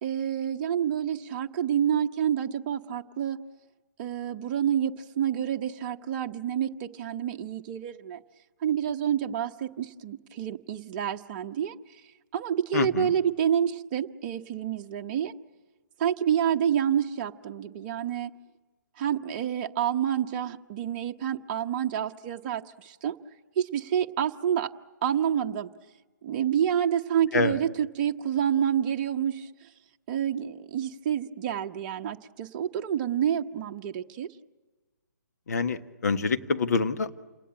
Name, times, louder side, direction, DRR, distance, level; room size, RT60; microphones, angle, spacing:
voice 1, 0.0-3.4 4.0-8.2 8.6-11.7 12.3-15.3 16.0-18.3 19.0-23.2 23.6-24.7 25.0-25.7 26.2-29.5 30.1-34.3, right 9 dB, 30° right, 4 dB, 1.0 m, -28 dB
voice 2, 12.7-13.1 27.3-27.6 35.5-37.1, left 4 dB, 60° left, 8 dB, 1.5 m, -26 dB
28.0 x 19.0 x 8.8 m, 1.3 s
figure-of-eight pair, 140°, 10 cm